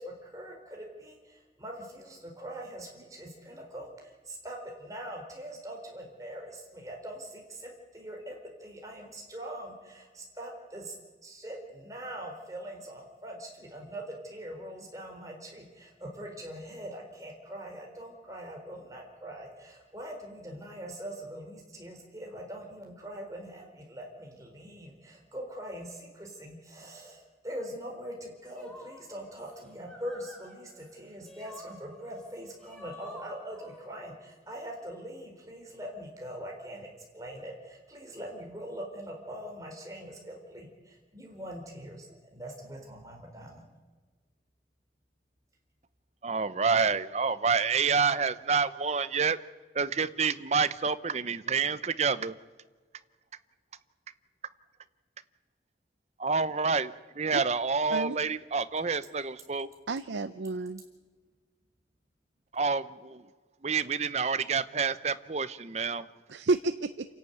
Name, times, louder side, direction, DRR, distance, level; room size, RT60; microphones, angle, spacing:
voice 1, 0.0-10.9 11.2-43.6, right 1 dB, 20° right, 0 dB, 4.2 m, -42 dB
sound 1, 28.4-34.3, left 1 dB, 5° left, 3.0 m, -51 dB
voice 2, 46.2-49.4 49.8-52.4 56.2-59.7 62.5-63.2 63.6-66.1, right 5 dB, 40° right, 14 dB, 0.7 m, -28 dB
voice 3, 59.9-60.8 66.3-67.1, right 3 dB, 90° right, 11 dB, 0.7 m, -30 dB
28.0 x 11.5 x 9.3 m, 1.5 s
head